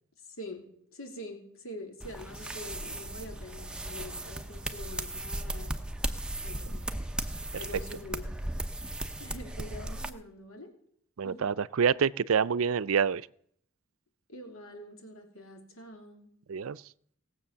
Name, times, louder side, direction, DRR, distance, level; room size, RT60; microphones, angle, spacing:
voice 1, 0.3-5.8 6.4-6.8 7.5-8.4 9.2-10.7 11.2-11.5 14.3-16.3, left 1 dB, 75° left, 3.1 m, -45 dB
sound 1, 2.0-10.1, right 1 dB, 5° right, 0.7 m, -36 dB
voice 2, 11.2-13.2 16.5-16.8, right 6 dB, 75° right, 0.5 m, -27 dB
18.5 x 7.7 x 6.9 m
head